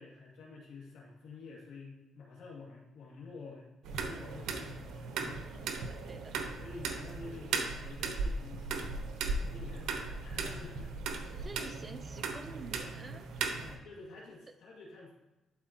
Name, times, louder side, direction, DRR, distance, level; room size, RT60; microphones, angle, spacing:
voice 1, 0.0-5.4 6.6-9.1 9.5-10.9 13.6-15.1, left 3 dB, 75° left, -3 dB, 2.1 m, -49 dB
sound 1, 3.8-13.7, right 4 dB, 80° right, 0.9 m, -37 dB
voice 2, 5.9-6.4 11.3-13.6, right 3 dB, 30° right, 7 dB, 0.7 m, -49 dB
11.5 x 4.5 x 2.9 m, 1.0 s
cardioid pair, 90°, 0 cm